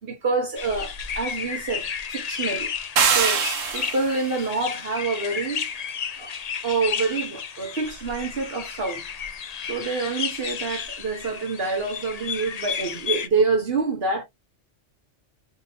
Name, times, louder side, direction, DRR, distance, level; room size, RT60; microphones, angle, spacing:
voice 1, 0.0-2.7 3.1-3.5 3.7-5.6 6.2-6.3 6.6-9.0 9.7-14.2, right 4 dB, 50° right, 2.0 m, -27 dB
sound 1, 0.6-13.3, left 7 dB, 45° left, 0.5 m, -32 dB
sound 2, 3.0-4.2, right 6 dB, 90° right, 1.3 m, -22 dB
4.6 x 3.2 x 3.0 m
omnidirectional pair, 1.3 m